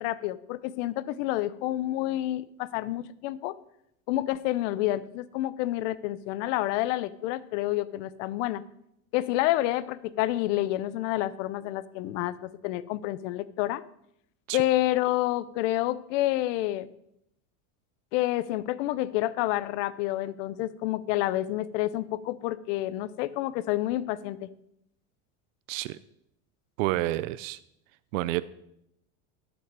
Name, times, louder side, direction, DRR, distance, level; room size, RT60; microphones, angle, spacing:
voice 1, 0.0-3.5 4.1-8.6 9.1-13.8 14.5-16.9 18.1-24.5, left 15 dB, 70° left, 17 dB, 0.7 m, -29 dB
voice 2, 25.7-26.0 26.8-27.6 28.1-28.4, right 17 dB, 80° right, 16 dB, 0.6 m, -29 dB
11.0 x 7.4 x 4.7 m, 0.79 s
supercardioid pair, 130°, 39 cm